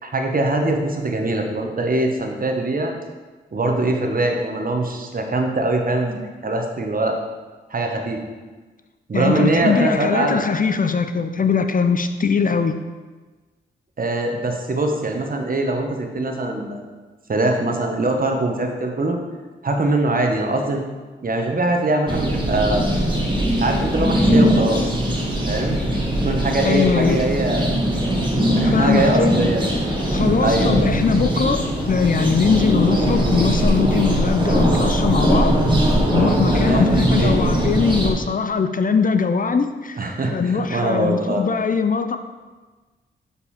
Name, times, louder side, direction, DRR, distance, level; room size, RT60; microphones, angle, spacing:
voice 1, 0.0-2.9 3.5-7.2 7.7-8.2 9.1-10.4 14.0-16.8 17.3-19.2 19.6-20.8 21.2-22.9 23.6-24.9 25.5-25.8 26.2-27.8 28.5-29.7 30.4-30.8 36.5-37.4 40.0-41.4, right 2 dB, 45° right, 3 dB, 1.3 m, -22 dB
voice 2, 9.1-12.8 26.6-27.3 28.7-29.3 30.1-35.5 36.1-40.0 40.3-42.2, left 5 dB, 40° left, 8 dB, 0.6 m, -21 dB
sound 1, 22.1-38.1, equal, 25° right, 2.2 m, -20 dB
7.0 x 5.4 x 4.3 m, 1.3 s
supercardioid pair, 40°, 20 cm